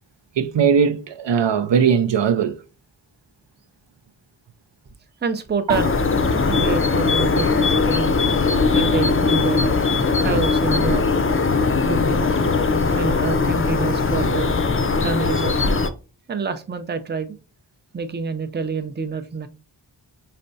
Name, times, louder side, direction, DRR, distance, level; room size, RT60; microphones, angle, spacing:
voice 1, 0.4-2.6 5.7-5.8 12.9-13.0, right 7 dB, 75° right, 0.5 m, -19 dB
voice 2, 5.2-5.9 6.5-8.2 8.7-9.8 10.2-11.1 11.9-12.3 13.0-14.5 15.0-15.8 16.3-17.4 17.9-19.5, right 5 dB, 25° right, 0.5 m, -27 dB
sound 1, 5.7-15.9, left 4 dB, 30° left, 0.5 m, -20 dB
5.3 x 3.3 x 2.7 m
wide cardioid pair, 70°, 44 cm